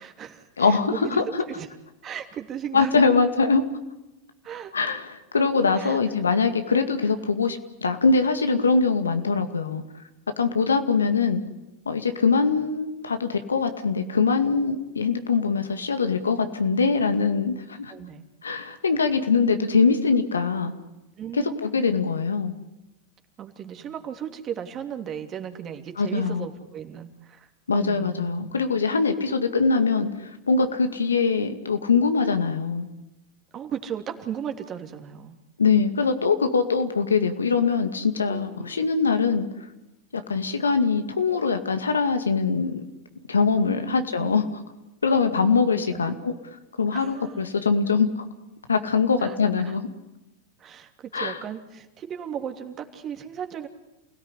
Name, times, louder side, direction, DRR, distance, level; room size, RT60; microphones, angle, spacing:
voice 1, 0.0-1.2 1.5-1.7 2.0-3.1 4.4-4.7 5.8-6.0 11.3-11.5 17.9-18.2 19.6-19.8 21.2-22.0 23.4-28.5 33.5-35.4 38.3-39.0 43.5-44.4 45.7-46.2 46.9-47.5 49.2-49.8 50.6-53.7, right 8 dB, 35° right, 6 dB, 3.1 m, -36 dB
voice 2, 0.6-1.4 2.7-3.6 4.7-9.8 10.4-11.4 11.9-17.9 18.4-20.7 21.3-22.5 26.0-26.5 27.7-32.9 35.6-39.5 40.1-42.8 43.3-44.4 45.0-46.3 46.8-48.1 48.7-49.9 51.1-51.4, left 4 dB, 90° left, 7 dB, 2.2 m, -23 dB
28.5 x 17.5 x 9.9 m, 0.98 s
hypercardioid pair, 100°, 0 cm